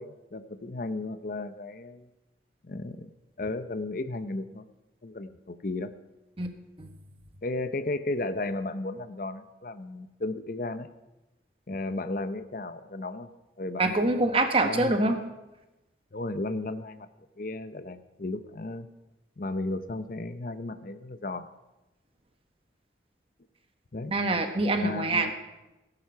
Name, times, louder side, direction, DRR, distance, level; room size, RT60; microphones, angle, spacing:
voice 1, 0.0-2.1 2.6-3.1 3.4-4.7 5.0-5.9 7.4-10.9 11.7-13.3 13.6-13.8 14.6-15.0 16.1-17.1 17.4-18.9 19.4-21.5 23.9-24.1 24.8-25.3, left 2 dB, 50° left, 12 dB, 0.7 m, -34 dB
voice 2, 13.8-15.2 24.1-25.3, right 2 dB, 30° right, 6 dB, 1.3 m, -25 dB
18.5 x 11.0 x 5.7 m, 1.0 s
head